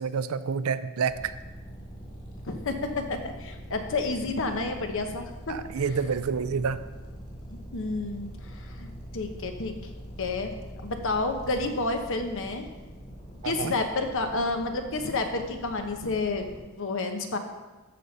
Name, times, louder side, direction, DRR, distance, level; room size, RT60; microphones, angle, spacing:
voice 1, 0.0-1.3 5.5-6.8 13.4-13.7, right 6 dB, 70° right, 13 dB, 0.4 m, -28 dB
sound 1, 1.1-16.6, equal, 30° left, 3.2 m, -43 dB
voice 2, 2.5-6.0 7.7-9.7 10.2-10.5 10.8-12.7 13.4-17.4, left 3 dB, 60° left, 5 dB, 1.0 m, -30 dB
13.5 x 5.2 x 4.1 m, 1.2 s
head